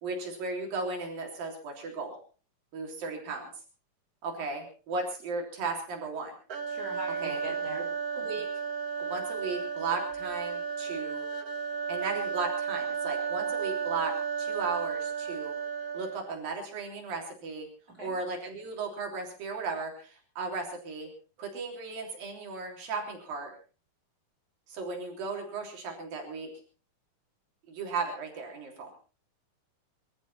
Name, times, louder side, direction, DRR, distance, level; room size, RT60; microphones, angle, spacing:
voice 1, 0.0-2.2 2.7-3.5 4.2-6.4 7.2-7.8 8.1-8.5 9.0-11.2 11.9-15.5 15.9-17.7 18.0-21.1 21.4-23.5 24.7-26.5 27.7-28.9, right 4 dB, 90° right, 1 dB, 5.2 m, -36 dB
sound 1, 6.5-16.4, right 6 dB, 55° right, 1.0 m, -33 dB
voice 2, 6.7-7.8 17.9-18.2, equal, 25° right, 2 dB, 4.8 m, -41 dB
24.5 x 13.5 x 4.2 m, 0.37 s
omnidirectional pair, 3.9 m